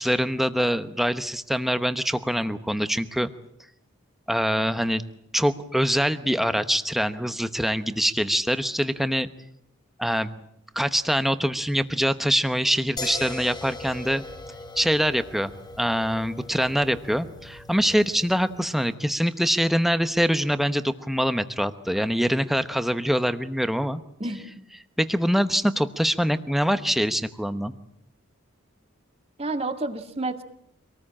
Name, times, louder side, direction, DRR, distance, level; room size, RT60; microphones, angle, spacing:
voice 1, 0.0-3.3 4.3-5.0 5.3-9.3 10.0-10.4 10.8-14.2 14.8-15.5 15.8-24.0 25.0-27.7, equal, ahead, 11 dB, 0.9 m, -24 dB
sound 1, 13.0-18.8, left 2 dB, 20° left, 2.6 m, -39 dB
voice 2, 24.2-24.6 29.4-30.4, right 2 dB, 30° right, 7 dB, 2.0 m, -30 dB
25.5 x 19.0 x 8.7 m, 0.75 s
head